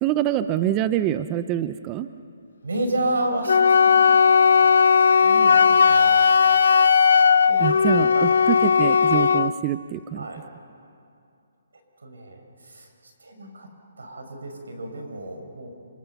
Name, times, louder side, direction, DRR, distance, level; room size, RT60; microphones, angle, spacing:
voice 1, 0.0-2.1 7.6-10.3, right 12 dB, 20° right, 12 dB, 0.6 m, -25 dB
voice 2, 2.6-4.2 4.5-6.3 7.5-8.4 10.1-10.4 12.0-13.7 14.0-15.7, right 1 dB, 90° right, 5 dB, 5.4 m, -32 dB
Wind instrument woodwind instrument, 3.5-9.5, left 6 dB, 70° left, 0.6 m, -17 dB
27.5 x 26.0 x 7.0 m, 2.5 s
hypercardioid pair, 155°, 0 cm